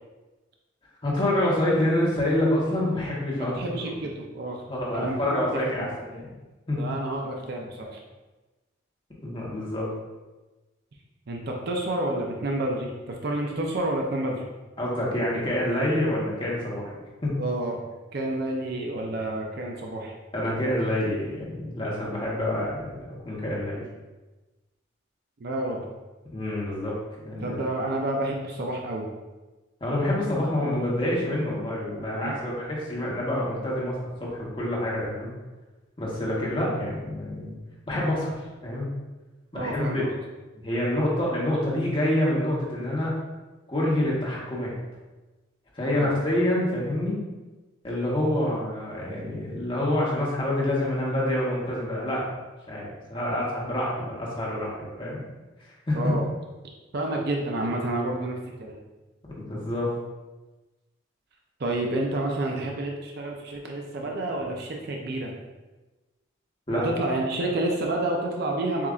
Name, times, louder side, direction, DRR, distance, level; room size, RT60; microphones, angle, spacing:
voice 1, 1.0-3.6 4.7-6.2 6.7-6.8 9.2-9.8 14.8-16.9 17.2-17.3 20.3-23.8 26.3-26.9 27.2-27.6 29.8-35.3 36.0-37.6 37.9-38.3 38.6-38.9 39.5-40.1 40.6-43.1 43.7-44.7 45.7-47.2 47.8-52.2 52.7-55.2 55.9-56.1 59.4-59.9 66.7-66.8, left 1 dB, 25° left, -5 dB, 1.0 m, -27 dB
voice 2, 3.4-4.6 4.9-5.9 6.8-8.0 11.3-14.5 17.4-17.8 18.1-20.1 25.4-25.8 27.4-29.1 32.1-32.4 39.5-40.1 45.9-46.1 55.9-56.3 56.9-58.8 61.6-65.3 66.7-68.9, right 1 dB, 50° right, 0 dB, 0.5 m, -29 dB
7.1 x 2.5 x 2.4 m, 1.2 s
head